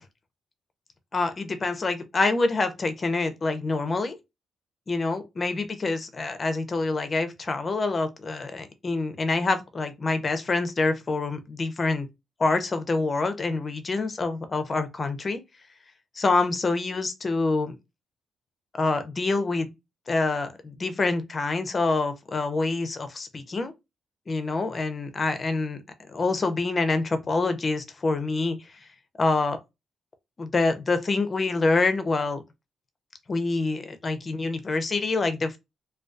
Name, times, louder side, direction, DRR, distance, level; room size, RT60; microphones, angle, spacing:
voice 1, 1.1-4.2 4.9-12.1 12.4-15.4 16.2-17.7 18.7-19.7 20.1-23.7 24.3-25.8 26.1-28.6 29.2-29.6 30.4-32.4 33.3-35.6, left 3 dB, 35° left, 0.5 m, -26 dB
2.2 x 2.2 x 2.5 m
cardioid pair, 95°, 0 cm